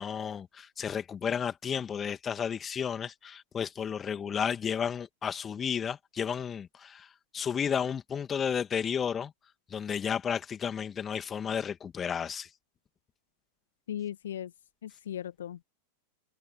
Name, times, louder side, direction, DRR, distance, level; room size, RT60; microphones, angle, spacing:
voice 1, 0.0-9.3 9.7-12.5, left 7 dB, 20° left, 2.6 m, -32 dB
voice 2, 13.9-14.5 14.8-15.6, left 10 dB, 60° left, 1.7 m, -37 dB
figure-of-eight pair, 90°, 0 cm